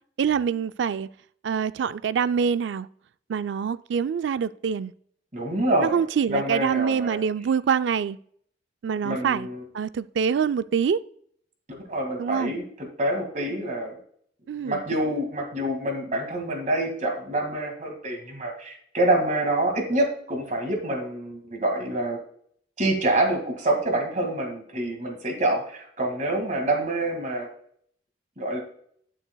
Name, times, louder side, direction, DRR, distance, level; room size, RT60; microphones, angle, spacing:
voice 1, 0.2-1.1 1.4-2.9 3.3-4.9 5.8-8.2 8.8-9.5 9.7-11.0 12.2-12.6 14.5-14.8, right 7 dB, 90° right, 0.4 m, -25 dB
voice 2, 5.3-6.0 6.3-7.2 9.0-9.6 11.9-14.0 14.6-22.2 22.8-27.5 28.4-28.6, right 1 dB, 45° right, 1.9 m, -26 dB
9.2 x 8.6 x 2.3 m
head